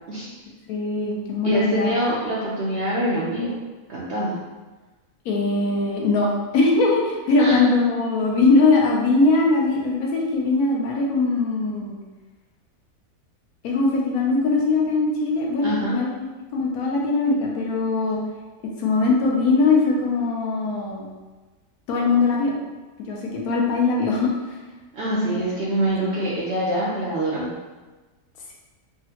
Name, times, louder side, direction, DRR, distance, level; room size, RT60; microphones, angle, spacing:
voice 1, 0.1-0.4 1.4-3.5 3.9-4.4 7.4-7.6 15.6-16.0 24.9-27.6, right 1 dB, 65° right, -6 dB, 0.6 m, -25 dB
voice 2, 0.7-1.9 5.3-12.0 13.6-16.1 16.5-18.2 18.8-21.1 21.9-22.6 23.0-24.3 25.1-25.4, left 3 dB, 75° left, -2 dB, 1.1 m, -21 dB
3.6 x 2.0 x 2.8 m, 1.2 s
omnidirectional pair, 1.6 m